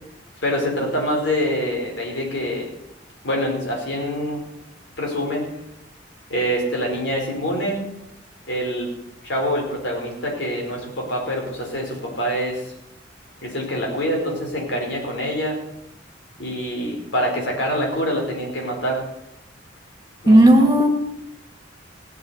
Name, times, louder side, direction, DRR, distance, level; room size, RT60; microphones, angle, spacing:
voice 1, 0.4-2.7 3.2-4.4 5.0-5.5 6.3-7.8 8.5-8.9 9.2-12.6 13.4-15.6 16.4-19.0 20.2-20.4, equal, 65° left, 0 dB, 4.9 m, -25 dB
voice 2, 20.3-20.9, right 1 dB, 15° right, 3 dB, 2.5 m, -12 dB
16.5 x 8.3 x 8.3 m, 0.82 s
head